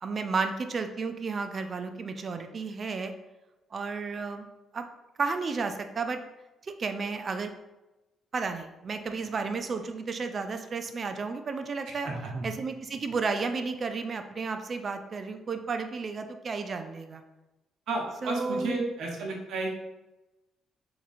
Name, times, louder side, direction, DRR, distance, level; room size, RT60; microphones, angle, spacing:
voice 1, 0.0-3.1 3.7-4.5 4.7-4.8 5.2-6.2 6.6-7.5 8.3-12.1 12.4-17.2 18.2-18.9, right 4 dB, 45° right, 7 dB, 0.4 m, -32 dB
voice 2, 12.0-12.5 17.9-19.7, right 2 dB, 75° right, 0 dB, 1.0 m, -32 dB
3.5 x 2.9 x 4.1 m, 1.0 s
cardioid pair, 90°, 0 cm